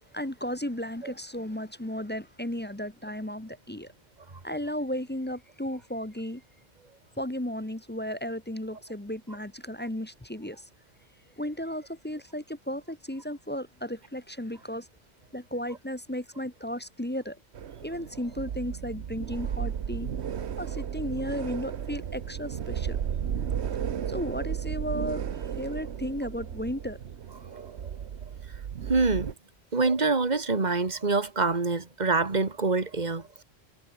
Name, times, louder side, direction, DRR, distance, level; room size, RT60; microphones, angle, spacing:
voice 1, 0.1-3.9 4.4-6.4 7.2-10.6 11.4-14.9 15.3-17.4 17.8-20.1 20.6-23.0 24.1-25.2 25.6-27.0, equal, 10° left, 1.0 m, -34 dB
sound 1, 17.5-29.3, right 8 dB, 80° right, 1.2 m, -34 dB
voice 2, 28.9-29.3 29.7-33.4, right 3 dB, 40° right, 2.2 m, -26 dB
omnidirectional pair, 1.1 m